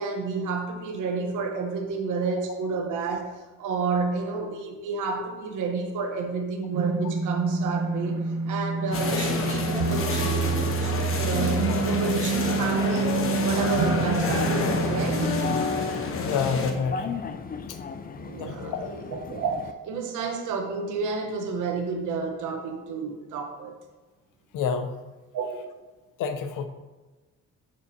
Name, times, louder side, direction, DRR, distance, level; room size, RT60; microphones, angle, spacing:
voice 1, 0.0-3.3 3.6-13.1 13.4-15.2 18.2-23.7 25.3-25.7, right 4 dB, 85° right, 3 dB, 1.1 m, -30 dB
sound 1, 6.7-15.6, right 4 dB, 65° right, 0.6 m, -28 dB
sound 2, 8.9-16.7, left 4 dB, 45° left, 1.0 m, -29 dB
sound 3, 14.1-19.7, left 5 dB, 30° left, 0.4 m, -35 dB
voice 2, 16.2-17.1 17.7-17.8 18.4-18.9 24.5-24.9 26.2-26.7, left 6 dB, 85° left, 8 dB, 0.7 m, -28 dB
6.9 x 6.5 x 2.8 m, 1.2 s
cardioid pair, 90°, 30 cm